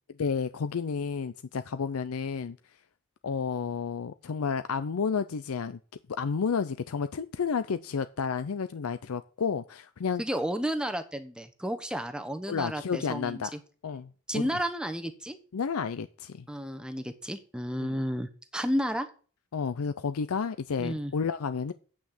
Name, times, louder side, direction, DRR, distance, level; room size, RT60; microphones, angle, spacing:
voice 1, 0.2-2.6 3.2-5.8 6.1-10.2 12.5-13.5 13.8-14.4 15.5-16.4 17.8-17.9 19.5-21.7, left 6 dB, 80° left, 0.5 m, -31 dB
voice 2, 10.2-13.6 14.3-15.4 16.5-19.1 20.8-21.1, equal, 5° right, 0.9 m, -32 dB
8.6 x 6.2 x 7.2 m
head